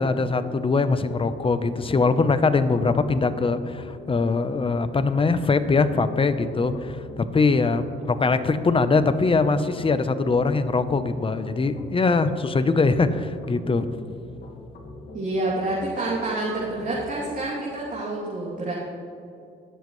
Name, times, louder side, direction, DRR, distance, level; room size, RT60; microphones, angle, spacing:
voice 1, 0.0-13.9, left 4 dB, 25° left, 11 dB, 0.8 m, -22 dB
sound 1, 1.0-17.5, left 2 dB, 60° left, 2.1 m, -44 dB
voice 2, 15.1-18.7, right 2 dB, 40° right, -7 dB, 2.9 m, -28 dB
21.0 x 7.4 x 3.2 m, 2.6 s
cardioid pair, 90°, 20 cm